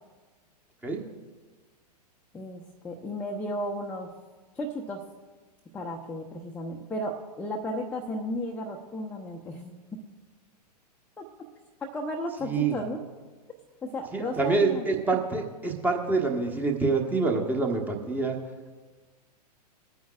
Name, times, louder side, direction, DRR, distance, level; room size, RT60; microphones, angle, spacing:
voice 1, 2.3-4.1 4.5-5.0 5.7-10.0 11.2-11.3 11.9-13.0 13.8-14.9, left 1 dB, 5° left, -1 dB, 0.7 m, -34 dB
voice 2, 12.4-12.8 14.1-18.4, right 4 dB, 10° right, 2 dB, 1.2 m, -26 dB
20.0 x 9.3 x 2.4 m, 1.3 s
figure-of-eight pair, 105°, 21 cm